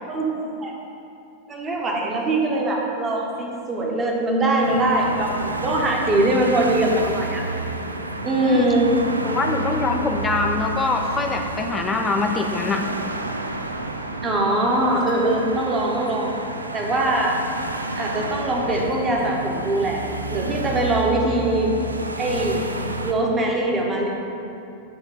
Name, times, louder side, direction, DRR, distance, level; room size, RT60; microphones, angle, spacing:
voice 1, 0.1-0.7 1.5-7.4 8.2-8.9 14.2-16.3 16.7-17.4 18.0-20.0 20.3-21.7 22.2-22.6 23.0-24.1, right 1 dB, 20° right, -1 dB, 1.2 m, -22 dB
sound 1, 4.6-23.1, right 2 dB, 80° right, 0.4 m, -30 dB
voice 2, 9.2-12.8, left 3 dB, 20° left, 3 dB, 0.6 m, -24 dB
7.8 x 3.5 x 5.6 m, 2.8 s
figure-of-eight pair, 90°, 0 cm